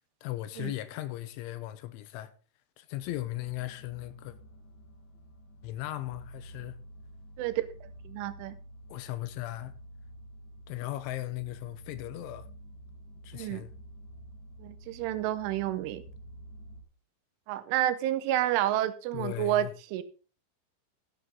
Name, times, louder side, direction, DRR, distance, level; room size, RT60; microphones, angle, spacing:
voice 1, 0.2-2.3 2.8-4.4 5.6-6.8 8.9-9.8 10.7-12.5 13.2-13.7 19.1-19.7, left 15 dB, 80° left, 3.1 m, -37 dB
sound 1, 3.0-16.8, right 1 dB, 50° left, 2.6 m, -50 dB
voice 2, 8.1-8.6 13.3-13.6 14.6-16.0 17.5-20.0, right 13 dB, 80° right, 3.2 m, -30 dB
14.5 x 8.1 x 3.9 m
omnidirectional pair, 5.6 m